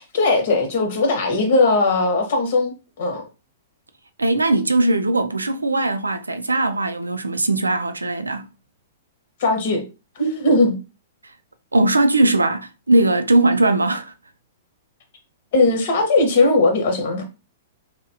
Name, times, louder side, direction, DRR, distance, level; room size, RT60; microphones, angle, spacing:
voice 1, 0.1-2.7 3.0-3.2 9.4-9.8 10.2-10.8 15.5-17.2, left 2 dB, 55° left, 1.0 m, -18 dB
voice 2, 4.2-8.5 11.7-14.1, right 2 dB, 85° right, 0.3 m, -19 dB
2.8 x 2.3 x 2.6 m
figure-of-eight pair, 110°, 0 cm